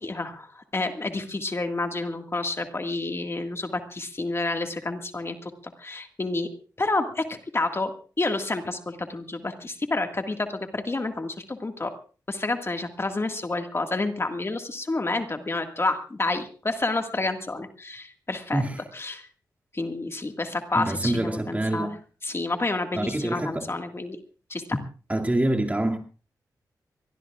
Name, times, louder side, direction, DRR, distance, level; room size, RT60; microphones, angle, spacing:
voice 1, 0.0-5.5 5.8-6.5 6.8-7.9 8.2-11.9 12.3-18.6 18.9-19.3 19.7-21.9 22.2-24.2 24.5-24.8, left 2 dB, 35° left, 1.9 m, -29 dB
voice 2, 20.7-21.9 22.9-23.7 25.1-26.0, right 1 dB, 20° right, 2.4 m, -26 dB
24.0 x 19.0 x 2.4 m
cardioid pair, 60°, 7 cm